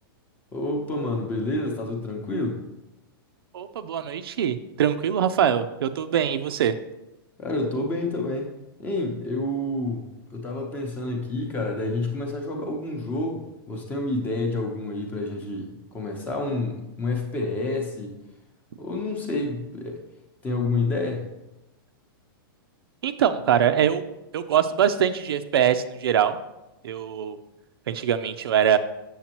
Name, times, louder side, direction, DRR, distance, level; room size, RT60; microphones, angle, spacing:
voice 1, 0.5-2.7 7.4-8.5 8.8-18.1 18.8-20.0 20.4-21.3, left 2 dB, 15° left, 2 dB, 0.7 m, -29 dB
voice 2, 3.5-6.7 23.0-24.0 24.3-26.4 26.8-27.4 27.9-28.8, right 9 dB, 85° right, 10 dB, 0.5 m, -23 dB
7.3 x 6.9 x 2.9 m, 0.97 s
supercardioid pair, 165°, 12 cm